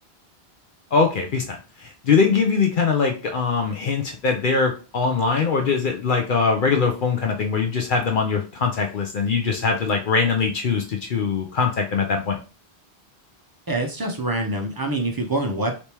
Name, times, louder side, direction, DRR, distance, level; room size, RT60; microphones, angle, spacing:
voice 1, 0.9-12.4, left 5 dB, 60° left, 3 dB, 0.7 m, -22 dB
voice 2, 13.7-15.8, right 2 dB, 30° right, 2 dB, 0.5 m, -25 dB
3.3 x 3.0 x 2.8 m, 0.34 s
omnidirectional pair, 1.1 m